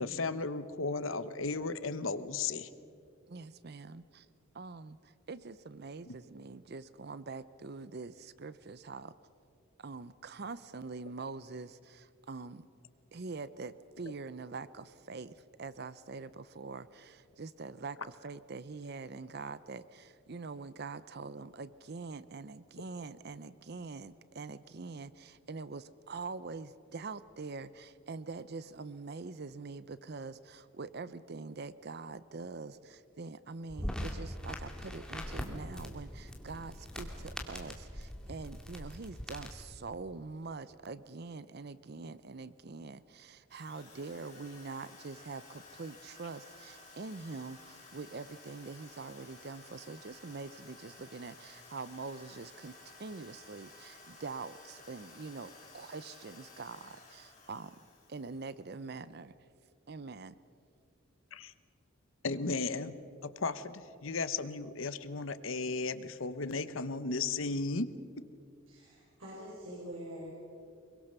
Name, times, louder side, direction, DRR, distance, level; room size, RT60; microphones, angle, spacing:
voice 1, 0.0-2.7 6.1-6.2 61.3-61.5 62.2-62.9 63.2-67.9, left 4 dB, 75° left, 13 dB, 1.0 m, -35 dB
voice 2, 3.3-4.3 4.5-9.1 9.8-12.7 13.1-52.7 53.0-57.8 58.1-59.3 59.9-60.4, right 4 dB, 50° right, 16 dB, 0.6 m, -44 dB
sound 1, 33.7-39.7, equal, 5° left, 2.2 m, -42 dB
Drill, 43.5-58.7, left 3 dB, 35° left, 7.3 m, -55 dB
voice 3, 68.7-70.3, equal, 80° right, -7 dB, 6.7 m, -45 dB
24.5 x 22.5 x 6.7 m, 2.4 s
head